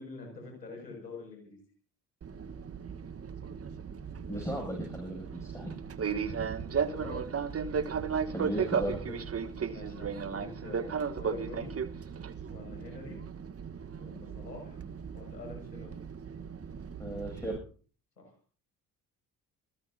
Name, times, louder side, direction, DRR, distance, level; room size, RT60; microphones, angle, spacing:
voice 1, 0.0-1.6 6.8-7.2 9.6-11.7 12.5-13.2 14.0-14.8 15.1-15.9 18.2-18.3, left 3 dB, 90° left, 2 dB, 6.8 m, -45 dB
Fixed-wing aircraft airplane, 2.2-17.6, right 6 dB, 30° right, 1.4 m, -36 dB
voice 2, 4.3-5.7 8.3-9.2 17.0-17.6, equal, 5° left, 1 dB, 7.7 m, -36 dB
28.0 x 17.5 x 2.8 m, 0.41 s
figure-of-eight pair, 50°, 49 cm